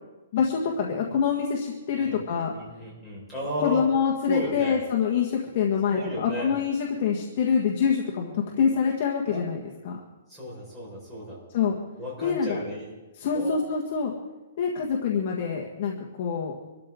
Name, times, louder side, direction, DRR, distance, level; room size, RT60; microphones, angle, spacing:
voice 1, 0.3-2.5 3.6-9.6 9.8-10.0 11.5-11.8 12.2-12.6 13.2-14.1 14.6-16.6, left 6 dB, 35° left, -1 dB, 1.6 m, -25 dB
voice 2, 1.9-3.8 4.3-4.8 5.9-6.6 9.3-9.4 10.3-11.4 12.0-12.9 13.3-13.6, equal, 5° right, -7 dB, 5.0 m, -34 dB
25.5 x 13.5 x 3.8 m, 1.1 s
hypercardioid pair, 175°, 0 cm